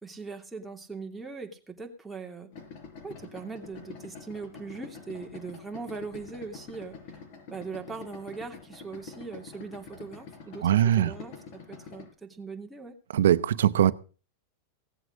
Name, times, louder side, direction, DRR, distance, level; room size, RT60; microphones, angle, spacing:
voice 1, 0.0-2.5 3.0-7.2 7.5-12.9, right 4 dB, 5° right, 1 dB, 2.8 m, -40 dB
Idling, 2.5-12.1, left 5 dB, 60° left, 5.8 m, -46 dB
voice 2, 10.6-11.1 13.1-13.9, right 10 dB, 85° right, 16 dB, 0.8 m, -21 dB
17.5 x 7.8 x 6.3 m, 0.37 s
hypercardioid pair, 120°, 0 cm